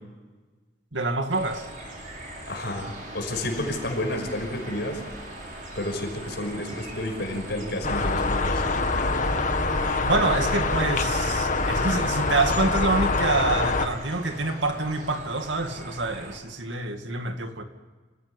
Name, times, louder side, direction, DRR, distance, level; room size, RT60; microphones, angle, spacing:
voice 1, 0.9-1.7 10.0-17.6, right 2 dB, 70° right, 6 dB, 2.3 m, -26 dB
sound 1, 1.3-16.4, right 1 dB, 45° right, 6.7 m, -41 dB
voice 2, 2.5-5.0 5.7-8.6, left 1 dB, 60° left, 3 dB, 5.8 m, -30 dB
sound 2, 7.8-13.9, left 3 dB, 40° left, 1.7 m, -25 dB
27.5 x 16.5 x 9.9 m, 1.3 s
head